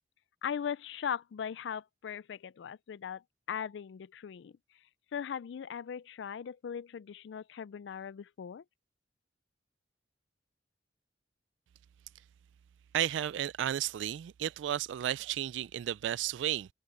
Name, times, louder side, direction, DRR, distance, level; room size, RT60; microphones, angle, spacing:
voice 1, 0.4-3.2 3.5-4.6 5.1-8.6, left 7 dB, 70° left, 0.3 m, -39 dB
voice 2, 12.9-16.7, right 11 dB, 75° right, 0.3 m, -33 dB
head